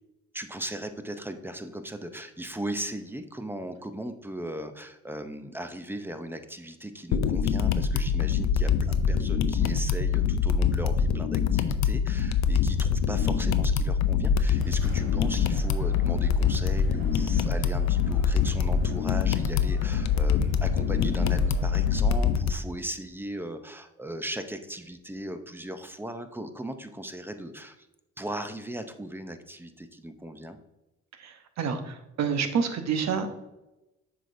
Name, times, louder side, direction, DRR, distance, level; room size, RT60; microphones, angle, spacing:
voice 1, 0.3-27.9 28.2-30.6, right 1 dB, 5° right, 8 dB, 0.6 m, -38 dB
sound 1, 7.1-22.5, left 6 dB, 65° left, 0.5 m, -24 dB
sound 2, 14.5-22.3, equal, 40° right, 2.3 m, -49 dB
voice 2, 31.2-33.3, right 6 dB, 65° right, 8 dB, 0.9 m, -28 dB
7.4 x 5.1 x 2.6 m, 0.98 s
cardioid pair, 90°, 30 cm